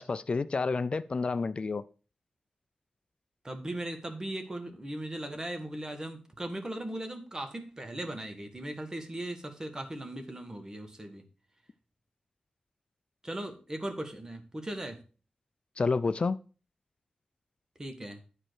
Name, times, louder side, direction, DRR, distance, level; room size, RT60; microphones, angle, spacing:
voice 1, 0.0-1.8 15.8-16.4, left 4 dB, 50° left, 0.4 m, -29 dB
voice 2, 3.4-11.2 13.2-15.0 17.8-18.2, right 1 dB, 25° right, 1.8 m, -38 dB
10.5 x 4.4 x 6.4 m
wide cardioid pair, 80°, 2 cm